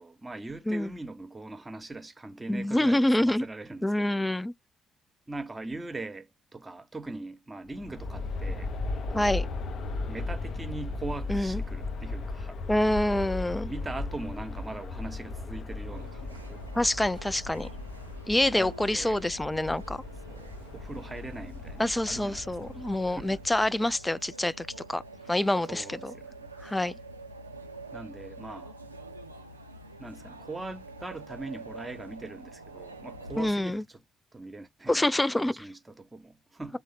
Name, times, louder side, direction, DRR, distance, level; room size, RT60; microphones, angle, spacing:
voice 1, 0.0-4.3 5.3-8.7 9.0-9.5 10.1-12.6 13.7-16.6 18.5-19.2 20.3-22.7 23.0-23.4 25.7-26.5 27.9-28.7 30.0-34.0 34.3-36.8, right 2 dB, 20° right, 0.9 m, -41 dB
voice 2, 2.5-3.5 3.8-4.5 9.1-9.5 11.3-11.6 12.7-13.7 16.7-17.7 18.3-20.0 21.8-25.0 25.3-26.1 26.6-26.9 33.4-33.8 34.9-35.7, left 1 dB, 10° left, 0.3 m, -26 dB
Aircraft, 7.7-23.7, left 3 dB, 50° left, 0.6 m, -37 dB
sound 1, 15.9-33.5, right 2 dB, 85° right, 0.4 m, -46 dB
3.5 x 2.0 x 3.4 m
figure-of-eight pair, 45°, 0 cm